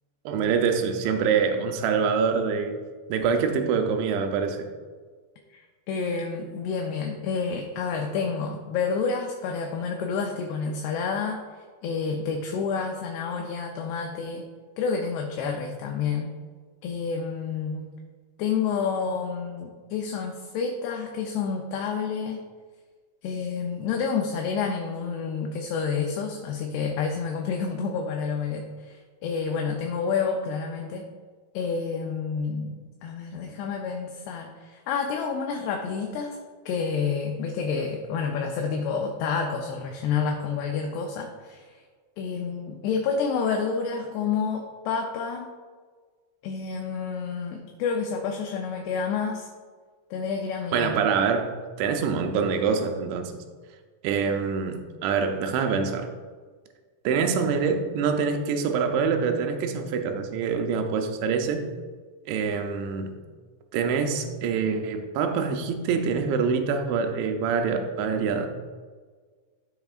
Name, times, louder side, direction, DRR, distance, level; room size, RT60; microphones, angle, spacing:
voice 1, 0.3-2.8 3.1-4.7 50.7-53.4 54.0-56.1 57.0-61.7 62.3-63.2 63.7-68.5, right 6 dB, 85° right, 5 dB, 3.1 m, -25 dB
voice 2, 5.9-11.4 11.8-14.4 14.8-16.3 16.8-17.9 18.4-22.4 23.2-31.1 31.5-36.4 36.7-41.8 42.2-45.5 46.4-49.5 50.1-51.0, left 5 dB, 80° left, 2 dB, 2.5 m, -29 dB
12.5 x 7.1 x 2.4 m, 1.5 s
omnidirectional pair, 5.2 m